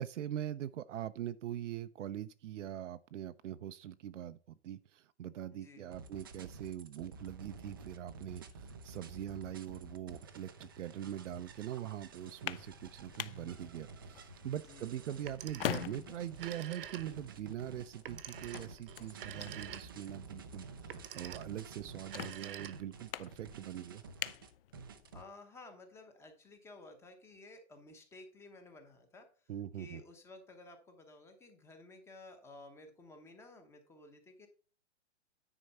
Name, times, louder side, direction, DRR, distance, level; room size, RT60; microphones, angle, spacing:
voice 1, 0.0-4.4 4.6-24.0 29.5-30.0, right 11 dB, 85° right, 0.6 m, -42 dB
voice 2, 5.5-6.0 14.7-14.9 25.1-29.5 29.8-34.5, left 2 dB, 5° left, 0.8 m, -54 dB
sound 1, 5.9-25.2, right 4 dB, 20° right, 0.3 m, -51 dB
sound 2, 12.2-25.2, left 12 dB, 55° left, 0.5 m, -46 dB
Telephone, 15.1-16.0 16.3-17.4 18.0-20.1 20.8-21.6 22.0-23.1, right 11 dB, 50° right, 0.9 m, -47 dB
10.0 x 4.5 x 5.5 m
hypercardioid pair, 165°, 36 cm